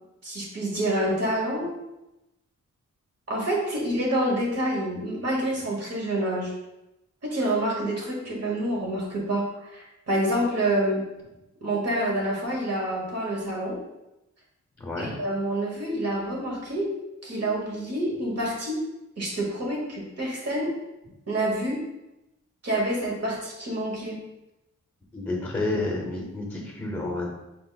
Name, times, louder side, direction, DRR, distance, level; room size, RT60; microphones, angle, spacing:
voice 1, 0.2-1.8 3.3-6.5 7.2-11.0 11.6-13.8 15.0-16.9 17.2-18.8 19.2-20.7 21.3-21.8 22.6-24.2, right 1 dB, 55° right, -2 dB, 1.2 m, -27 dB
voice 2, 14.8-15.1 25.1-27.3, left 2 dB, 10° left, -1 dB, 0.7 m, -30 dB
4.7 x 2.0 x 3.8 m, 0.94 s
wide cardioid pair, 110°, 29 cm